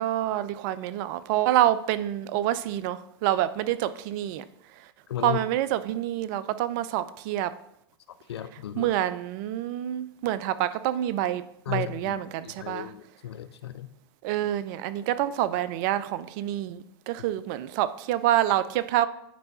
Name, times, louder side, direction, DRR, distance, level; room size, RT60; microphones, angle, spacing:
voice 1, 0.0-4.4 5.2-7.5 8.8-11.4 11.7-12.9 14.2-19.1, right 13 dB, 50° right, 0.5 m, -27 dB
voice 2, 8.3-8.9 11.7-13.9, left 11 dB, 75° left, 0.5 m, -35 dB
9.3 x 3.3 x 4.2 m
hypercardioid pair, 100°, 14 cm